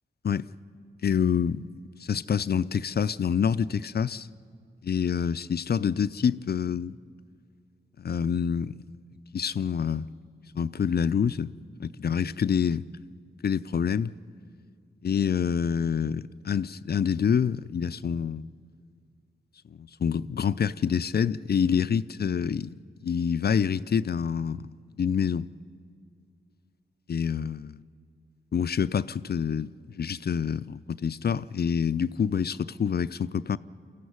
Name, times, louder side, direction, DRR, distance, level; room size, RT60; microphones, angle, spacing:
voice 1, 1.0-1.7 2.0-4.3 4.8-6.9 8.0-8.8 9.3-10.1 10.6-11.5 11.8-12.9 13.4-14.1 15.0-18.5 19.8-22.7 23.0-24.7 25.0-25.5 27.1-27.7 28.5-29.7 30.0-33.6, left 7 dB, 50° left, 0.5 m, -27 dB
24.0 x 15.0 x 9.5 m
cardioid pair, 70°, 20 cm